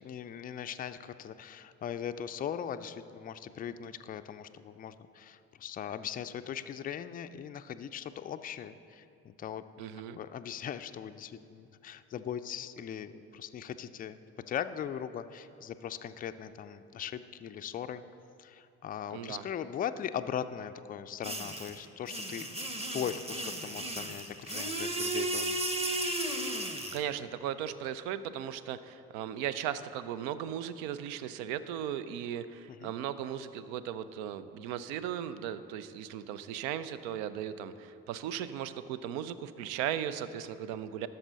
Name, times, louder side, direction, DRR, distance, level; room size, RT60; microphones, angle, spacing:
voice 1, 0.0-9.6 10.2-14.2 14.5-18.0 18.4-22.5 22.9-25.6 32.7-32.9, left 9 dB, 25° left, 10 dB, 0.4 m, -39 dB
voice 2, 9.8-10.2 19.1-19.4 26.9-41.1, right 10 dB, 65° right, 13 dB, 0.5 m, -37 dB
sound 1, 21.2-27.0, right 1 dB, 15° right, 0.9 m, -34 dB
11.5 x 6.6 x 4.0 m, 2.7 s
hypercardioid pair, 50°, 39 cm